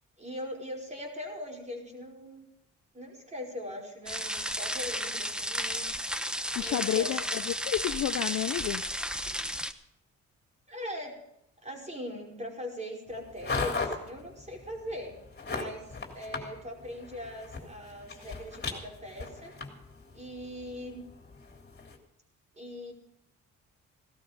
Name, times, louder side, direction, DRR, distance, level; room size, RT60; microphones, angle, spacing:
voice 1, 0.2-2.5 2.9-5.9 6.6-7.1 10.7-11.1 11.6-15.2 15.4-15.9 16.1-19.5 20.1-21.1 22.6-22.9, left 1 dB, 25° right, 0 dB, 5.2 m, -40 dB
sound 1, 4.1-9.7, equal, 5° right, 1.0 m, -33 dB
voice 2, 6.6-8.8, left 12 dB, 60° left, 15 dB, 0.6 m, -30 dB
sound 2, 13.1-22.0, left 4 dB, 35° left, 3.5 m, -39 dB
17.0 x 12.5 x 5.2 m, 0.81 s
cardioid pair, 90°, 30 cm